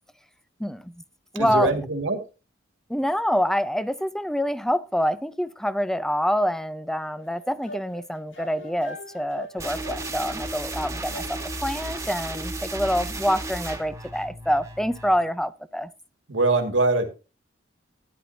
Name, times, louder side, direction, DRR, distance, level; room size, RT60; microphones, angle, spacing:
voice 1, 0.6-1.0 1.3-1.7 2.9-15.9, equal, 5° left, 0.5 m, -26 dB
voice 2, 1.3-2.2 16.3-17.1, right 2 dB, 85° right, 2.1 m, -23 dB
sound 1, 7.2-11.7, equal, 80° left, 2.7 m, -42 dB
sound 2, 9.6-15.2, right 2 dB, 15° right, 1.6 m, -34 dB
12.0 x 10.0 x 2.8 m
head